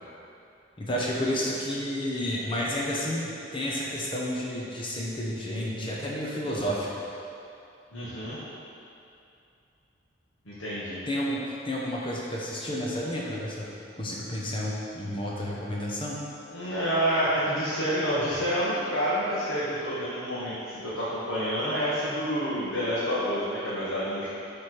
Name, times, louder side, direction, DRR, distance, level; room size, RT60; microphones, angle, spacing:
voice 1, 0.8-7.0 11.1-13.7 14.0-16.2, equal, 25° left, -4 dB, 0.9 m, -31 dB
voice 2, 7.9-8.4 10.4-11.0 16.5-24.3, equal, 70° left, -10 dB, 1.2 m, -28 dB
7.8 x 3.4 x 4.6 m, 2.6 s
head